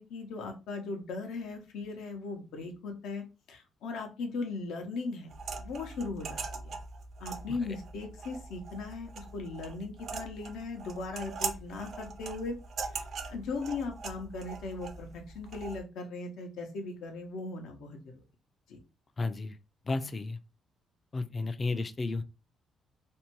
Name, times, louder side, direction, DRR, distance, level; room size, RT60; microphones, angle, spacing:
voice 1, 0.0-5.3 5.6-6.7 7.2-12.6 12.9-18.0 18.7-18.8, left 3 dB, 85° left, 0.7 m, -38 dB
sound 1, 5.3-15.8, right 4 dB, 60° right, 0.4 m, -41 dB
voice 2, 19.2-19.6 19.8-20.4 21.1-22.2, left 3 dB, 35° left, 0.3 m, -33 dB
2.6 x 2.2 x 2.9 m
cardioid pair, 90°, 0 cm